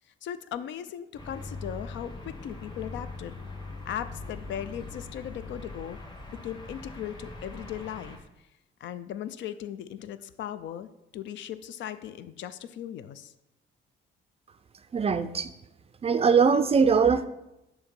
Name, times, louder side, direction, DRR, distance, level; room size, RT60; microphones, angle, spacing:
voice 1, 0.2-3.3 3.9-6.0 6.4-8.2 8.8-13.3, left 10 dB, 70° left, 12 dB, 0.4 m, -38 dB
sound 1, 1.2-8.2, left 3 dB, 20° left, 1.1 m, -41 dB
voice 2, 14.9-15.5 16.0-17.3, right 6 dB, 30° right, 11 dB, 0.4 m, -21 dB
7.0 x 2.8 x 5.2 m, 0.91 s
cardioid pair, 90°, 20 cm